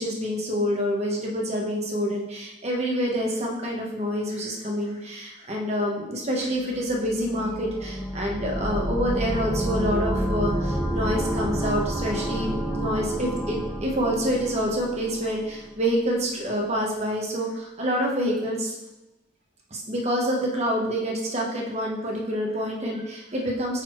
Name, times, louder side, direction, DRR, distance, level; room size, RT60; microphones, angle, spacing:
voice 1, 0.0-18.7 19.7-23.8, equal, 35° right, -1 dB, 1.0 m, -27 dB
sound 1, 6.6-15.4, equal, ahead, 0.5 m, -29 dB
8.7 x 4.1 x 3.1 m, 0.97 s
head